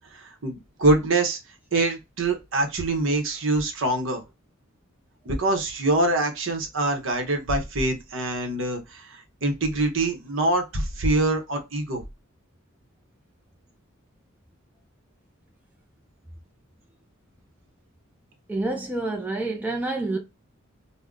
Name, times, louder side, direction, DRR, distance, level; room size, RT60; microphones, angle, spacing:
voice 1, 0.1-1.4 1.7-4.2 5.2-12.0, right 2 dB, 60° right, 0.8 m, -24 dB
voice 2, 18.5-20.2, right 2 dB, 10° right, 0.4 m, -28 dB
2.5 x 2.1 x 3.6 m
head